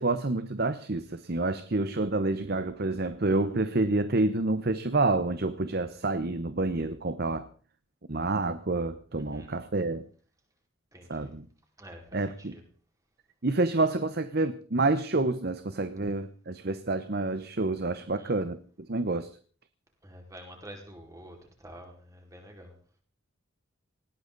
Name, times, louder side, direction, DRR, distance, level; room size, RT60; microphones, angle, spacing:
voice 1, 0.0-7.5 8.1-10.0 11.1-11.5 12.1-12.5 13.4-18.6 18.9-19.3, right 2 dB, 50° right, 0.9 m, -28 dB
voice 2, 9.2-9.6 10.9-11.3 11.8-12.6 17.9-18.4 20.0-22.7, equal, 15° right, 4.8 m, -48 dB
19.5 x 17.5 x 4.0 m
head